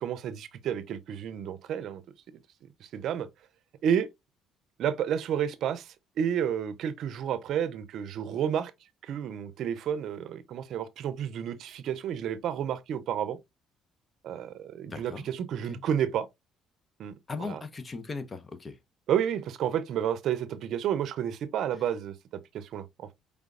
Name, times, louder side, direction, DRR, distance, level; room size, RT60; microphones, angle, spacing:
voice 1, 0.0-2.0 2.8-3.3 3.8-4.1 4.8-8.7 9.0-13.4 14.2-16.3 17.0-17.1 17.4-17.6 19.1-22.1 22.5-23.1, right 9 dB, 65° right, 0.5 m, -30 dB
voice 2, 14.9-15.3 15.6-15.9 17.3-18.8, left 4 dB, 35° left, 0.7 m, -38 dB
5.0 x 3.5 x 2.4 m
supercardioid pair, 75°, 0 cm